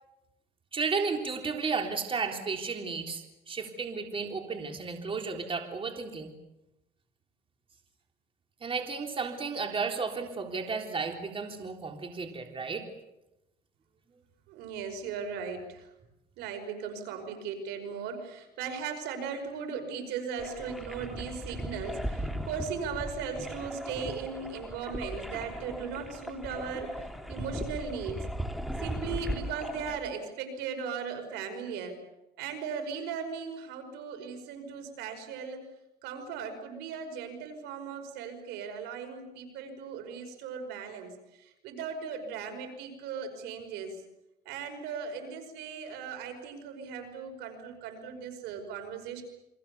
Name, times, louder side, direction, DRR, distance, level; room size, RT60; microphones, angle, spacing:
voice 1, 0.7-6.3 8.6-12.9, right 4 dB, 30° right, 3 dB, 3.7 m, -33 dB
voice 2, 14.5-15.9 16.4-26.9 27.3-28.2 28.8-31.9 32.4-35.6 36.0-41.1 41.4-44.0 44.5-49.2, right 6 dB, 90° right, 6 dB, 5.7 m, -37 dB
sound 1, 20.4-30.0, equal, ahead, 2.9 m, -37 dB
29.0 x 24.5 x 7.1 m, 0.93 s
cardioid pair, 110°, 17 cm